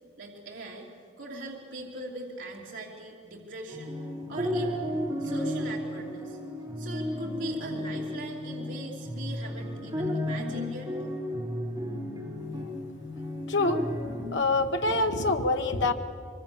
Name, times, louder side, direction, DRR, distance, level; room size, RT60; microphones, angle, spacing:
voice 1, 0.2-0.9 1.2-4.0 4.3-4.8 5.2-6.4 6.8-10.9, right 1 dB, 80° right, -3 dB, 3.0 m, -40 dB
sound 1, 3.7-14.2, left 1 dB, 20° right, 4.2 m, -33 dB
voice 2, 13.5-13.8 14.3-15.9, left 2 dB, 75° left, 5 dB, 1.2 m, -25 dB
25.0 x 24.5 x 7.1 m, 2.3 s
head